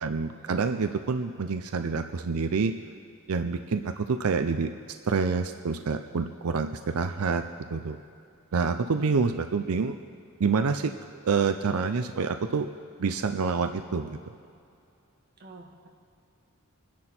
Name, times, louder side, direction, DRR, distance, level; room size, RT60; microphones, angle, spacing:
voice 1, 0.0-2.7 3.3-4.7 5.0-7.4 7.7-8.0 8.5-10.0 10.4-12.7 13.0-14.2, right 5 dB, 90° right, 8 dB, 0.6 m, -27 dB
voice 2, 15.4-15.9, right 2 dB, 45° right, 1 dB, 1.7 m, -47 dB
27.0 x 10.5 x 4.4 m, 2.6 s
head